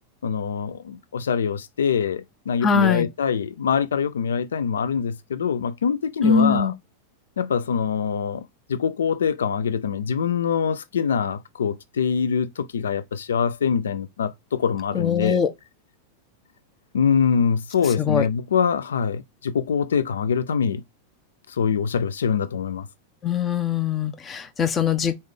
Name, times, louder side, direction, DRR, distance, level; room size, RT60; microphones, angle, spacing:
voice 1, 0.2-6.7 7.4-15.4 16.9-20.8 21.5-22.9, left 7 dB, 65° left, 0.3 m, -24 dB
voice 2, 2.6-3.1 6.2-6.7 14.9-15.5 18.0-18.3 23.2-25.2, left 6 dB, 25° left, 0.7 m, -21 dB
4.1 x 3.1 x 3.6 m
figure-of-eight pair, 90°, 0 cm